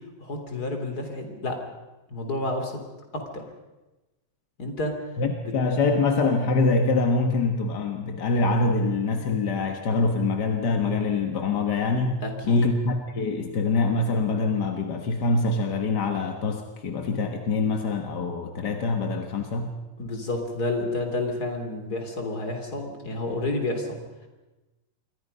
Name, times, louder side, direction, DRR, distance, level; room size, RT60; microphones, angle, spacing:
voice 1, 0.2-1.6 2.1-2.8 3.1-3.4 4.6-4.9 5.4-5.5 12.2-12.8 20.0-24.0, left 2 dB, 30° left, 4 dB, 3.5 m, -30 dB
voice 2, 5.2-19.7, left 3 dB, 45° left, 4 dB, 1.4 m, -24 dB
27.5 x 23.0 x 5.5 m, 1.1 s
omnidirectional pair, 3.6 m